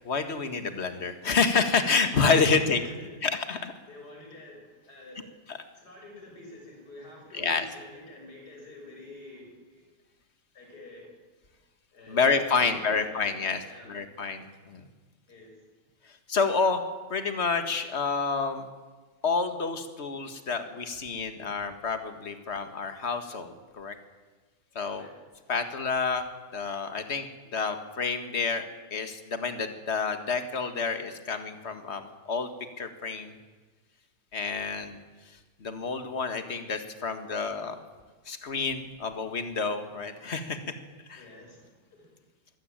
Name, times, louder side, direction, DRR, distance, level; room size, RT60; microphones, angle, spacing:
voice 1, 0.1-2.8 3.2-3.7 5.5-5.6 7.3-7.6 12.1-13.6 13.9-14.8 16.3-16.8 17.1-18.7 19.2-23.9 24.8-25.1 25.5-26.3 26.5-28.7 28.9-32.5 32.8-33.3 34.3-35.0 35.6-37.8 38.3-40.6 41.1-41.2, left 5 dB, 40° left, 8 dB, 2.0 m, -28 dB
voice 2, 2.4-3.3 3.9-5.3 5.7-9.9 10.5-11.1 11.9-12.3 12.5-13.2 13.6-13.9 15.3-15.6 24.9-25.1 41.2-42.1, left 2 dB, 65° left, 0 dB, 7.5 m, -48 dB
23.5 x 16.5 x 8.9 m, 1.3 s
omnidirectional pair, 1.8 m